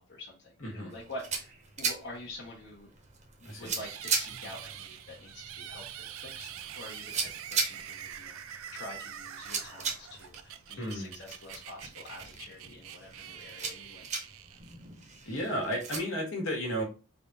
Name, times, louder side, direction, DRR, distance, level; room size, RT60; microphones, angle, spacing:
voice 1, 0.0-2.9 3.4-14.3, left 1 dB, 55° left, -4 dB, 0.8 m, -47 dB
voice 2, 0.6-0.9 3.4-3.7 10.8-11.1 15.2-16.8, equal, 75° left, 1 dB, 1.2 m, -33 dB
sound 1, 0.9-16.0, right 5 dB, 30° right, 0.6 m, -39 dB
sound 2, 3.7-15.0, right 10 dB, 75° right, 0.3 m, -45 dB
3.4 x 2.3 x 3.9 m, 0.34 s
head